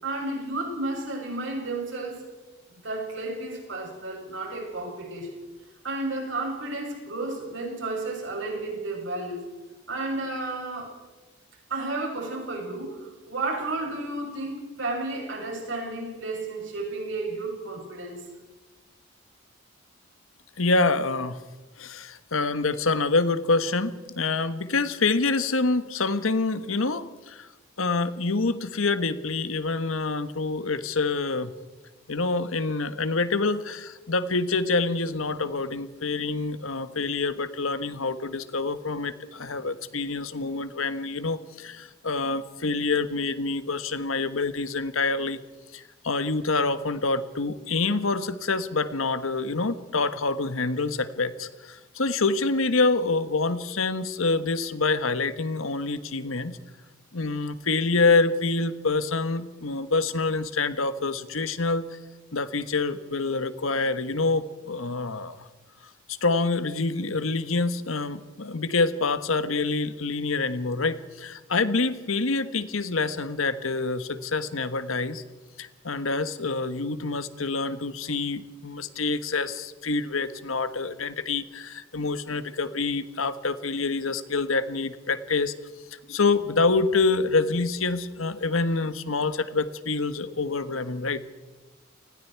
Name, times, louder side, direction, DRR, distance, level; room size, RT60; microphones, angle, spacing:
voice 1, 0.0-2.3 2.7-5.3 5.8-9.5 9.9-10.9 11.7-18.3, right 2 dB, 65° right, 0 dB, 7.3 m, -32 dB
voice 2, 20.6-21.4 21.8-27.5 27.8-31.5 32.1-45.4 45.7-56.6 57.1-62.0 62.3-65.4 66.2-75.2 75.6-85.5 86.1-91.2, left 3 dB, 80° left, 12 dB, 1.3 m, -26 dB
29.0 x 20.0 x 4.7 m, 1.2 s
head